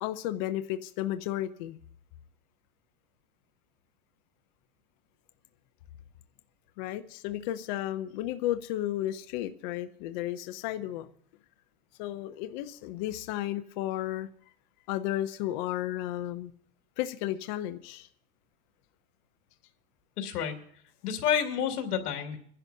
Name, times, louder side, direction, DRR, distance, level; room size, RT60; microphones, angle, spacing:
voice 1, 0.0-1.8 6.8-11.1 12.0-14.3 14.9-16.5 17.0-18.1, left 13 dB, 30° left, 9 dB, 0.4 m, -33 dB
voice 2, 20.2-20.6 21.0-22.4, left 8 dB, 75° left, 4 dB, 2.2 m, -29 dB
26.0 x 11.0 x 2.6 m, 0.63 s
supercardioid pair, 145°, 46 cm